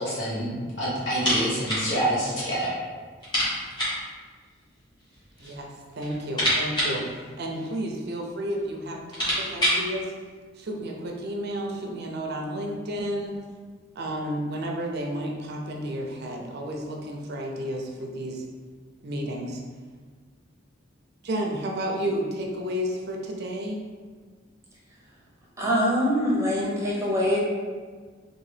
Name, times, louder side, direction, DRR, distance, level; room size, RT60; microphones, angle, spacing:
voice 1, 0.0-2.7, right 1 dB, 65° left, -8 dB, 1.3 m, -27 dB
sound 1, 1.1-1.9 2.2-2.3 2.6-2.7 3.2-4.1 5.0-5.6 5.9-7.9 8.6-8.7 8.9-9.9, equal, 25° left, 1.2 m, -27 dB
voice 2, 5.4-7.0 7.4-10.1 10.6-13.4 14.0-18.4 19.0-19.6 21.2-23.8, equal, 55° right, 0 dB, 0.5 m, -31 dB
voice 3, 25.6-27.4, equal, 15° right, -6 dB, 0.7 m, -23 dB
3.7 x 2.4 x 3.3 m, 1.5 s
head